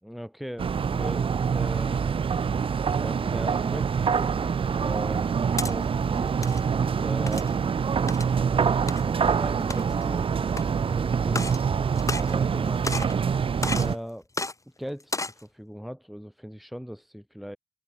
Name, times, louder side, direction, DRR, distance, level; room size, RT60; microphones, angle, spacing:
voice 1, 0.0-2.3 3.0-5.3 5.7-6.4 7.0-7.5 9.4-10.3 10.6-12.9 13.7-14.3 14.8-17.6, equal, ahead, 5.3 m, -39 dB
sound 1, 0.6-14.0, right 6 dB, 40° right, 0.4 m, -25 dB
sound 2, 5.6-5.7 6.3-6.6 7.3-7.5 8.1-8.3 8.9-9.0 9.6-10.0 10.5-10.6 11.3-11.6 12.0-12.6 12.8-13.2 13.6-13.9 14.3-14.5 15.0-15.4, left 2 dB, 20° left, 2.2 m, -32 dB
wide cardioid pair, 95°, 14 cm